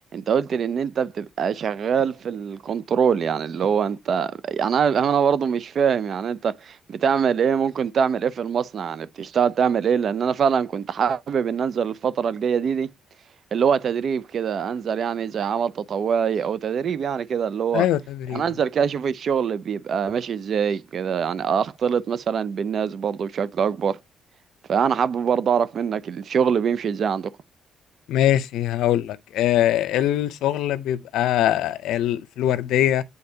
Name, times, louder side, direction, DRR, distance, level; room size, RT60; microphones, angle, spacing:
voice 1, 0.1-12.9 13.5-17.9 18.3-24.0 24.7-27.3, right 7 dB, 55° right, 0.6 m, -23 dB
voice 2, 17.7-18.4 28.1-33.0, left 12 dB, 90° left, 0.6 m, -22 dB
8.8 x 4.0 x 2.7 m
cardioid pair, 90°, 0 cm